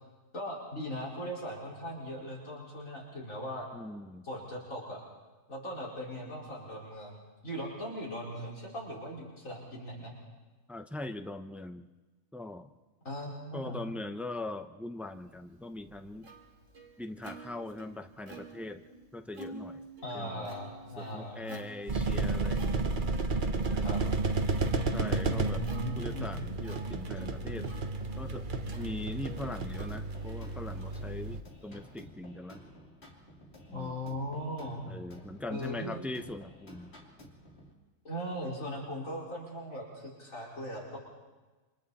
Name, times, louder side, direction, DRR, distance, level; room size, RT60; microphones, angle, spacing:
voice 1, 0.3-3.7 4.2-5.0 5.5-10.1 13.1-13.8 20.0-21.6 23.4-24.0 25.3-26.3 33.7-34.9 35.5-36.0 38.0-41.0, equal, 75° left, -5 dB, 5.3 m, -39 dB
voice 2, 3.7-4.3 10.7-11.9 12.3-12.7 13.5-16.3 17.0-18.9 19.1-19.9 20.1-20.5 21.0-23.0 24.9-25.7 26.0-27.7 28.1-28.5 28.7-32.6 33.7-34.0 34.9-36.9, left 2 dB, ahead, 7 dB, 0.6 m, -41 dB
Plucked string instrument, 15.3-32.1, right 3 dB, 70° right, 2.8 m, -51 dB
sound 1, 21.9-31.4, right 3 dB, 40° right, 1.1 m, -32 dB
sound 2, 29.4-37.7, equal, 50° left, 3.0 m, -53 dB
27.5 x 25.5 x 4.2 m, 1.2 s
omnidirectional pair, 1.4 m